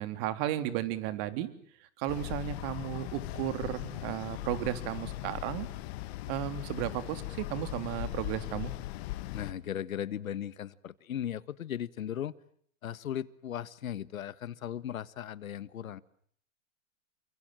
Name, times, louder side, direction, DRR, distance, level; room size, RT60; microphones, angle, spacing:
voice 1, 0.0-1.5 2.0-5.7 6.3-8.7, right 12 dB, 45° right, 11 dB, 3.4 m, -34 dB
sound 1, 2.1-9.5, left 17 dB, 50° left, 2.0 m, -39 dB
voice 2, 9.3-12.4 12.8-16.0, left 10 dB, 85° left, 18 dB, 1.5 m, -37 dB
29.0 x 25.0 x 7.6 m, 0.63 s
hypercardioid pair, 130°, 40 cm